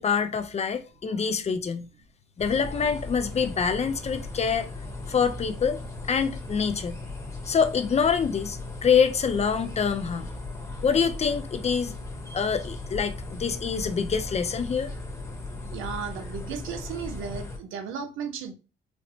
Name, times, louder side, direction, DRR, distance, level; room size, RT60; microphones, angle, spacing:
voice 1, 0.0-1.9 2.4-4.7 5.1-5.8 6.1-7.0 7.5-10.3 10.8-11.9 12.3-14.9, left 6 dB, 35° left, 0.4 m, -25 dB
sound 1, 2.4-17.6, left 2 dB, 15° left, 1.0 m, -37 dB
voice 2, 15.7-18.5, right 6 dB, 85° right, 0.6 m, -35 dB
4.2 x 2.0 x 2.7 m
cardioid pair, 90°, 20 cm